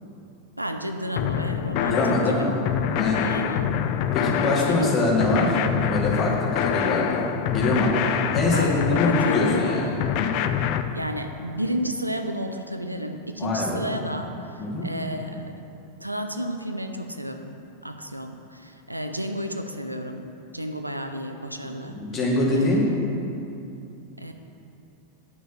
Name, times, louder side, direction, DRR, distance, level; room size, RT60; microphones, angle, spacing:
voice 1, 0.6-2.5 3.3-3.7 4.7-4.9 8.5-9.8 10.9-15.6 16.0-20.3 20.5-22.0 22.5-23.0 24.2-24.3, equal, 85° right, 6 dB, 0.6 m, -32 dB
sound 1, 1.2-10.8, left 9 dB, 45° left, 0.5 m, -26 dB
voice 2, 1.8-2.6 2.9-3.3 4.1-10.0 13.4-13.9 14.6-14.9 21.9-22.9, left 2 dB, 25° left, -5 dB, 2.8 m, -24 dB
10.5 x 6.1 x 7.3 m, 2.8 s
figure-of-eight pair, 90°, 0 cm